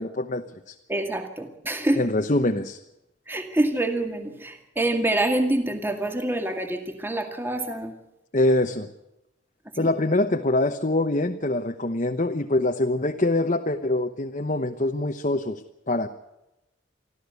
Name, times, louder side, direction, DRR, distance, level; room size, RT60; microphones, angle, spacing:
voice 1, 0.0-0.7 2.0-2.8 8.3-8.9 9.8-16.1, left 2 dB, 40° left, 5 dB, 1.0 m, -24 dB
voice 2, 0.9-2.1 3.3-8.0 9.8-9.9, right 1 dB, 10° right, 6 dB, 2.0 m, -26 dB
25.0 x 14.5 x 8.2 m, 0.88 s
head